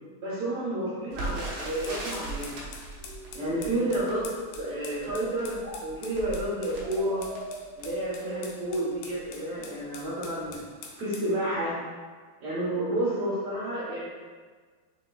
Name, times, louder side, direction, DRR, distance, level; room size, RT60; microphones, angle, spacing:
voice 1, 0.2-2.6 3.3-4.2 4.5-7.2 7.7-10.6 11.0-11.8 12.4-14.1, right 1 dB, 70° right, -8 dB, 1.6 m, -30 dB
Crackle, 1.1-8.1 8.7-8.8 9.1-9.3 9.9-10.2 10.4-10.5, right 2 dB, 90° right, 1.4 m, -40 dB
sound 1, 1.8-11.3, left 4 dB, 80° left, 2.0 m, -46 dB
sound 2, 3.0-5.8 6.8-9.8, right 1 dB, 50° right, 1.7 m, -44 dB
6.0 x 3.7 x 2.2 m, 1.5 s
omnidirectional pair, 4.4 m